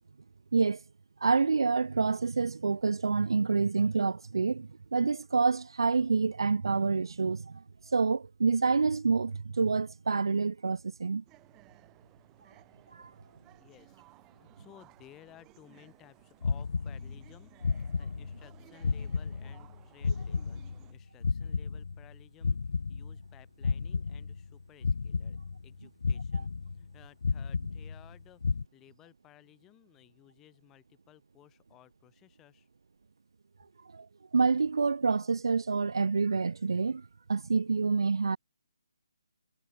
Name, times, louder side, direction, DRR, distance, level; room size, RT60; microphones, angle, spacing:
voice 1, 1.2-7.6 7.9-11.2 12.9-13.1 33.9-34.1 34.3-38.4, right 4 dB, 65° right, 0.5 m, -27 dB
sound 1, 11.3-20.9, right 19 dB, 10° right, 1.1 m, -60 dB
voice 2, 13.6-25.4 25.6-32.7, left 14 dB, 10° left, 2.3 m, -58 dB
sound 2, 16.4-17.3 17.6-18.5 18.8-20.9 21.2-23.3 23.6-24.5 24.8-25.7 26.0-26.9 27.2-28.1 28.4-28.6, left 4 dB, 60° left, 0.4 m, -32 dB
hypercardioid pair, 180°, 3 cm